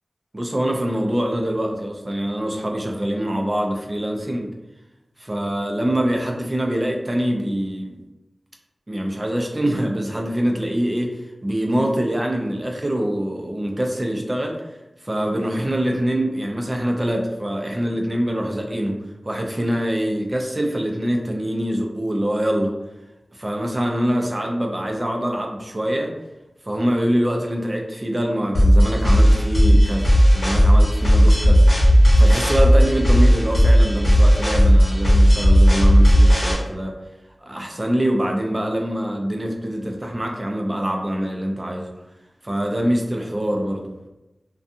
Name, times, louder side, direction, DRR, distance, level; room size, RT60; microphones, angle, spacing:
voice 1, 0.3-4.5 5.2-8.0 8.9-14.7 15.0-22.7 23.3-26.1 26.7-31.7 32.2-37.0 37.4-41.9 42.4-43.9, equal, 30° right, 1 dB, 0.5 m, -24 dB
sound 1, 28.5-36.5, equal, 50° left, 1.0 m, -14 dB
2.5 x 2.3 x 2.7 m, 0.97 s
wide cardioid pair, 55°, 0 cm